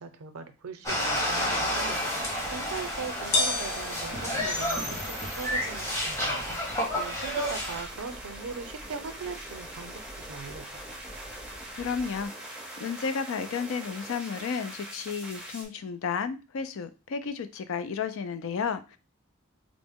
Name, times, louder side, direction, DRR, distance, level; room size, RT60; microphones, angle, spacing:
voice 1, 0.0-6.5 6.9-10.8, right 5 dB, 90° right, 0.5 m, -40 dB
sound 1, 0.8-7.8, equal, 15° left, 0.9 m, -30 dB
sound 2, 1.3-15.6, right 1 dB, 5° right, 0.5 m, -42 dB
sound 3, 2.2-12.3, left 2 dB, 45° left, 1.0 m, -38 dB
voice 2, 11.7-19.0, left 6 dB, 65° left, 0.3 m, -33 dB
3.8 x 2.0 x 3.5 m
head